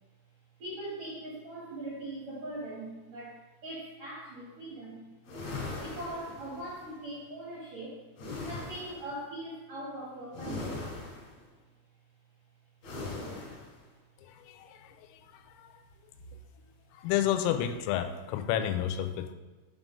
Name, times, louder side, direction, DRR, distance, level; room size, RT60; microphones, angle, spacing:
voice 1, 0.6-5.1 5.8-8.0 8.4-11.0, right 1 dB, 80° right, -6 dB, 1.5 m, -41 dB
sound 1, 5.2-6.9 8.2-9.1 10.3-11.4 12.8-13.8, left 3 dB, 50° left, 3.2 m, -40 dB
voice 2, 17.0-19.3, left 10 dB, 85° left, 8 dB, 3.3 m, -29 dB
9.5 x 3.8 x 5.1 m, 1.2 s
omnidirectional pair, 6.0 m